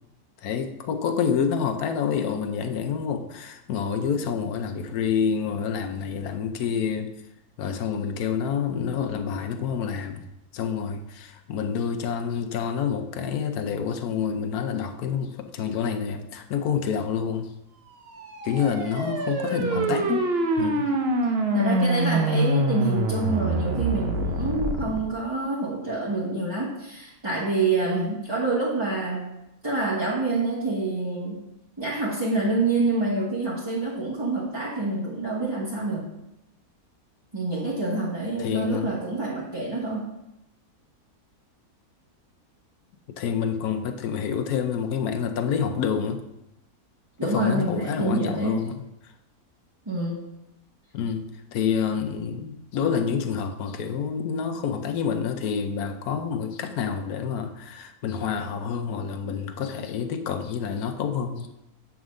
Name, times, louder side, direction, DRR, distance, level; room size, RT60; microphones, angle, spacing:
voice 1, 0.4-7.1 7.6-10.2 10.5-17.5 18.4-20.3 20.6-20.9 38.4-38.9 43.2-46.2 47.2-49.1 50.9-51.2 51.5-61.5, left 7 dB, 80° left, 5 dB, 1.2 m, -28 dB
sound 1, 18.1-25.0, right 1 dB, 50° right, 1.0 m, -25 dB
voice 2, 19.6-19.9 21.5-29.3 29.6-31.4 31.8-36.1 37.3-40.1 47.2-48.7 49.8-50.3, right 3 dB, 20° right, -7 dB, 1.2 m, -27 dB
8.2 x 3.7 x 6.3 m, 0.90 s
omnidirectional pair, 1.6 m